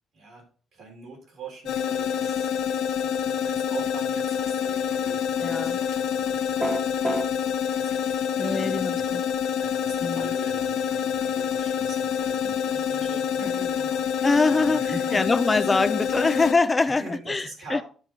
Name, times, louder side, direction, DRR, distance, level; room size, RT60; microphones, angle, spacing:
voice 1, 0.1-0.5 0.7-2.5 3.0-9.2 9.6-15.5 16.1-16.4 16.8-17.8, right 3 dB, 55° right, 3.5 m, -42 dB
sound 1, 1.7-16.5, left 8 dB, 75° left, 0.8 m, -27 dB
voice 2, 5.4-5.8 8.4-9.2 10.0-10.3 14.2-17.8, left 3 dB, 15° left, 0.4 m, -24 dB
sound 2, 6.6-7.3, right 1 dB, 5° right, 1.0 m, -26 dB
12.0 x 4.5 x 4.5 m
cardioid pair, 170°, 0 cm